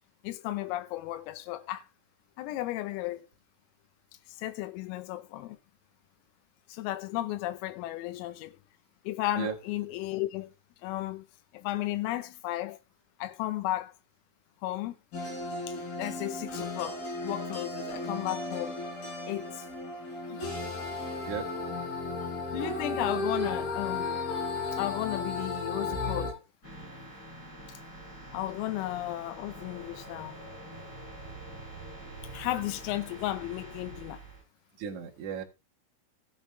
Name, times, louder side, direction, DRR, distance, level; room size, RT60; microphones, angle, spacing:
voice 1, 0.2-1.9 2.4-3.2 4.4-5.6 6.7-8.6 9.1-10.5 10.8-11.2 11.5-12.8 13.2-13.9 14.6-15.0 15.7-18.8 19.3-19.7 22.5-24.1 24.7-26.3 28.3-30.4 32.3-34.2, left 15 dB, 85° left, 3.5 m, -34 dB
sound 1, 15.1-26.3, left 3 dB, 45° left, 7.7 m, -34 dB
sound 2, 26.6-34.4, right 2 dB, 15° left, 7.7 m, -45 dB
voice 2, 34.8-35.4, right 7 dB, 70° right, 1.8 m, -35 dB
15.0 x 8.1 x 3.5 m
omnidirectional pair, 5.9 m